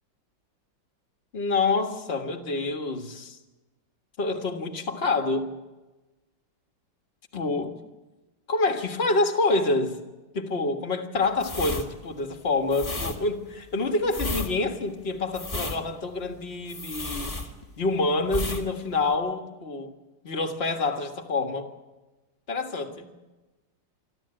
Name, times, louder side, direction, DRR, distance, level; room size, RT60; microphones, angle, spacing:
voice 1, 1.3-3.4 4.2-5.5 7.3-7.7 8.5-10.0 10.3-17.3 17.8-19.9 20.2-21.7 22.5-23.1, left 3 dB, 35° left, 5 dB, 1.7 m, -27 dB
sound 1, 11.4-17.9 18.3-18.7 18.9-19.1, left 2 dB, 20° left, 1.7 m, -33 dB
27.0 x 12.5 x 8.9 m, 1.2 s
omnidirectional pair, 2.0 m